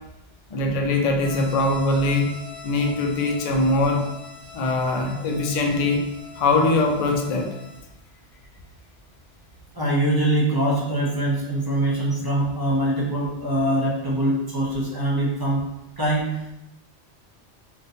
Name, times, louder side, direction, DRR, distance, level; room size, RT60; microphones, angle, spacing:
voice 1, 0.5-2.4 2.6-4.0 4.5-6.0 6.3-7.5, left 2 dB, 75° left, 2 dB, 0.3 m, -22 dB
sound 1, 1.2-7.8, left 5 dB, 45° left, 1.0 m, -43 dB
voice 2, 9.7-15.7 16.0-16.5, right 1 dB, 25° right, -4 dB, 0.5 m, -23 dB
3.6 x 2.7 x 2.7 m, 0.90 s
omnidirectional pair, 1.2 m